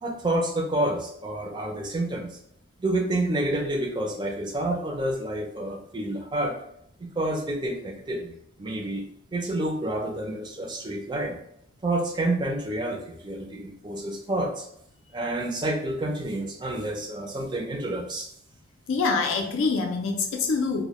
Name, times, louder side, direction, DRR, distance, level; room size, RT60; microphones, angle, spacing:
voice 1, 0.0-2.4 2.8-6.6 7.0-8.3 8.6-9.0 9.3-11.4 11.8-14.7 15.1-18.3, right 1 dB, 20° right, 2 dB, 0.3 m, -29 dB
voice 2, 18.9-20.9, left 4 dB, 85° left, 3 dB, 0.4 m, -25 dB
2.1 x 2.0 x 2.8 m, 0.71 s
head